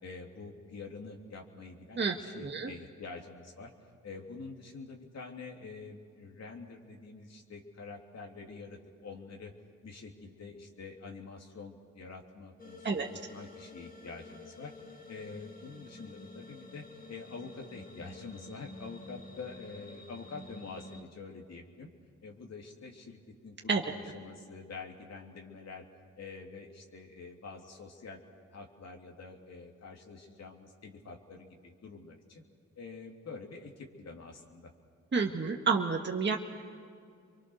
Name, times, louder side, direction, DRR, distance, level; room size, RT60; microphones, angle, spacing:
voice 1, 0.0-3.7 4.0-9.5 9.8-21.9 22.2-23.2 23.4-25.8 26.2-28.2 28.5-32.4 32.8-34.7, left 4 dB, 60° left, 1 dB, 3.2 m, -46 dB
voice 2, 2.0-2.7 12.8-13.1 23.7-23.8 35.1-36.4, right 4 dB, 40° right, 1 dB, 1.8 m, -29 dB
sound 1, 12.6-21.0, left 2 dB, 30° left, 2.6 m, -50 dB
29.0 x 23.5 x 6.5 m, 2.2 s
cardioid pair, 60°, 30 cm